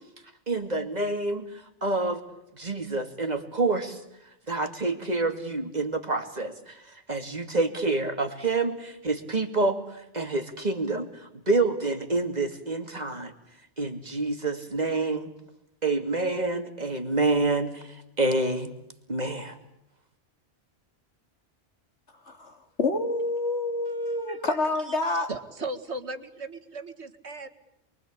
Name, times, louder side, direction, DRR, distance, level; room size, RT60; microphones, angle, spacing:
voice 1, 0.5-1.4 1.8-2.2 2.5-4.0 4.5-6.8 7.1-11.1 11.5-13.3 13.8-15.3 15.8-18.7 19.1-19.6, right 2 dB, 40° right, 2.6 m, -27 dB
voice 2, 22.3-25.3, left 2 dB, 80° left, 3.3 m, -28 dB
voice 3, 23.9-24.6 24.9-25.0 25.3-27.5, right 3 dB, 75° right, 2.3 m, -38 dB
28.5 x 23.0 x 8.7 m
omnidirectional pair, 1.2 m